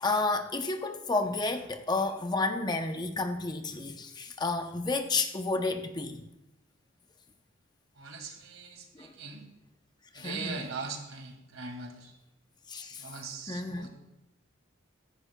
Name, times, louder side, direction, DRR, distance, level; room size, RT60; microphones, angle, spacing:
voice 1, 0.0-6.3 9.0-9.1 10.1-10.6 12.7-13.1 13.5-13.9, left 3 dB, 20° left, 0.6 m, -31 dB
voice 2, 8.0-9.4 10.1-12.1 13.0-13.9, right 4 dB, 85° right, 2.1 m, -40 dB
16.5 x 14.5 x 2.2 m
head